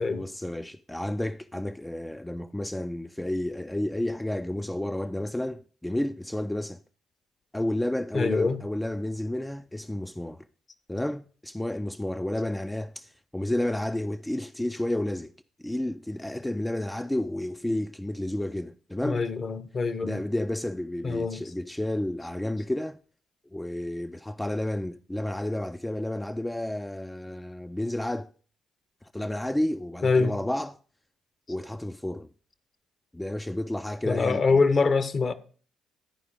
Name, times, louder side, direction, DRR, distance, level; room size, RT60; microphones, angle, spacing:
voice 1, 0.0-6.8 7.5-10.4 10.9-15.3 15.6-19.2 20.0-23.0 23.5-28.3 29.0-30.8 31.5-32.3 33.1-34.6, left 1 dB, 10° left, 0.3 m, -31 dB
voice 2, 8.1-8.6 19.0-20.2 21.0-21.4 30.0-30.3 34.1-35.3, left 4 dB, 40° left, 0.8 m, -24 dB
10.5 x 4.9 x 4.9 m
figure-of-eight pair, 45°, 0 cm